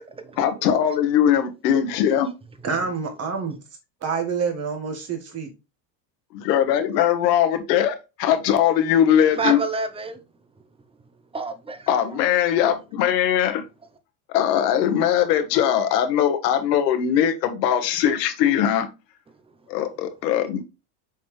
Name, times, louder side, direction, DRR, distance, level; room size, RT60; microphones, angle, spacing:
voice 1, 0.4-2.3 6.3-9.6 11.9-13.6 14.3-18.9 19.7-20.6, left 9 dB, 85° left, 1.5 m, -20 dB
voice 2, 2.6-3.6 4.0-5.5, right 5 dB, 30° right, 1.6 m, -27 dB
voice 3, 9.3-10.2 11.3-12.2, right 4 dB, 10° right, 0.6 m, -29 dB
7.2 x 4.1 x 3.2 m
supercardioid pair, 135°, 48 cm